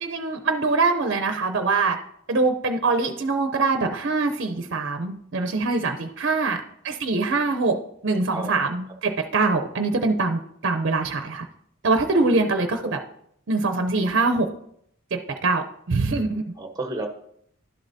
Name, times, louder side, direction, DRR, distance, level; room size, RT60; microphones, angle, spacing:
voice 1, 0.0-2.0 2.3-11.5 11.8-13.0 13.5-14.5 15.1-16.4, right 3 dB, 60° right, 7 dB, 0.5 m, -23 dB
voice 2, 8.3-8.8 12.2-12.3 12.8-13.0 16.6-17.1, right 2 dB, 15° right, 4 dB, 0.9 m, -32 dB
11.0 x 7.4 x 2.7 m, 0.70 s
head